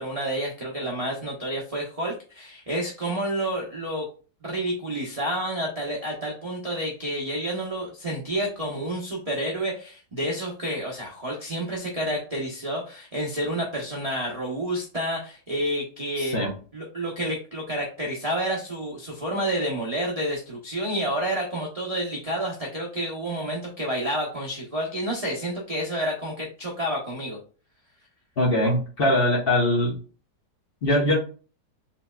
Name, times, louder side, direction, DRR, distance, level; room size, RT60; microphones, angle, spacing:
voice 1, 0.0-4.1 4.4-16.4 16.7-27.4, right 1 dB, 40° right, -3 dB, 0.5 m, -29 dB
voice 2, 28.4-29.9 30.8-31.2, left 1 dB, 40° left, -3 dB, 1.0 m, -21 dB
3.9 x 3.0 x 2.2 m, 0.38 s
omnidirectional pair, 1.8 m